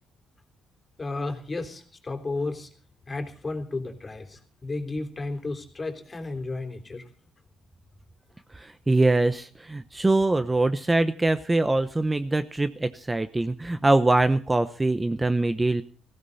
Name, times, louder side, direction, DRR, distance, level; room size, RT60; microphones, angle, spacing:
voice 1, 1.0-2.7 3.1-7.1, left 3 dB, 30° left, 6 dB, 3.5 m, -33 dB
voice 2, 8.5-15.8, right 2 dB, 15° right, 11 dB, 0.9 m, -23 dB
18.0 x 16.0 x 4.1 m, 0.42 s
cardioid pair, 90°, 0 cm